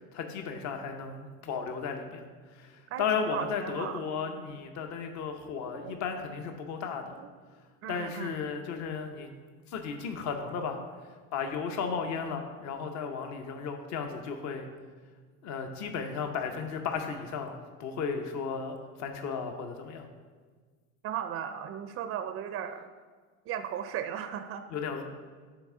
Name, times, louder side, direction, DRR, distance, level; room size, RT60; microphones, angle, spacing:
voice 1, 0.1-2.2 2.5-7.0 7.9-9.3 9.7-10.8 11.3-14.7 15.4-20.1 24.7-25.0, left 5 dB, 50° left, 5 dB, 0.8 m, -34 dB
voice 2, 2.9-4.0 5.8-5.9 7.8-8.4 21.0-22.9 23.5-24.6, right 9 dB, 40° right, 10 dB, 0.4 m, -36 dB
9.0 x 3.6 x 3.7 m, 1.5 s
supercardioid pair, 95°, 37 cm